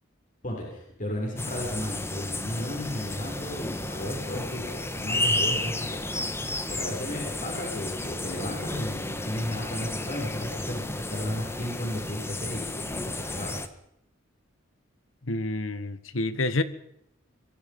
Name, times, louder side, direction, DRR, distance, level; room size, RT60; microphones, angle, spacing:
voice 1, 0.4-6.0 6.3-13.5, left 1 dB, 40° left, -1 dB, 6.7 m, -34 dB
sound 1, 1.4-13.7, left 1 dB, 15° left, 1.6 m, -32 dB
voice 2, 15.2-16.6, left 2 dB, 80° left, 13 dB, 1.6 m, -28 dB
25.5 x 23.0 x 5.5 m, 0.78 s
head